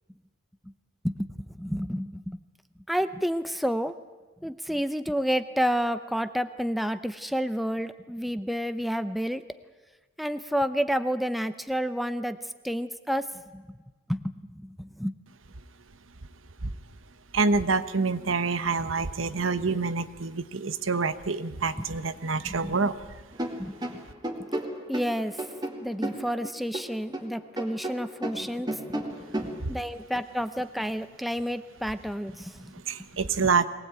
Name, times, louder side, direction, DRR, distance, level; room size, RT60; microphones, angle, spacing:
voice 1, 1.0-2.4 2.9-3.9 4.4-9.4 10.2-12.4 12.6-13.3 13.5-13.8 14.1-15.2 22.4-22.7 23.6-24.0 24.9-25.4 25.8-28.7 29.4-32.7, equal, ahead, 10 dB, 0.7 m, -30 dB
voice 2, 17.3-23.2 29.6-29.8 32.7-33.7, right 4 dB, 80° right, 12 dB, 1.1 m, -27 dB
sound 1, 23.3-27.3 27.6-29.6, right 1 dB, 20° right, 2.2 m, -33 dB
22.5 x 18.5 x 8.9 m, 1.3 s
head